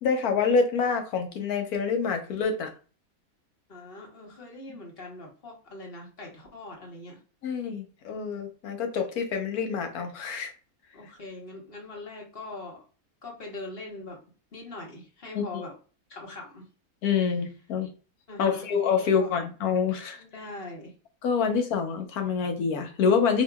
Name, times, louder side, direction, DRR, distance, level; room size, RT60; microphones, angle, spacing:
voice 1, 0.0-2.7 7.4-10.5 15.3-15.5 17.0-17.9 18.4-20.2 21.2-23.4, left 5 dB, 80° left, 5 dB, 1.3 m, -26 dB
voice 2, 3.7-7.2 10.9-12.8 13.2-14.2 14.5-15.8 16.1-16.7 17.8-17.9 18.3-18.7 19.0-19.3 20.2-20.9, left 2 dB, 45° left, 0 dB, 1.3 m, -41 dB
4.6 x 3.0 x 2.2 m, 0.36 s
omnidirectional pair, 1.6 m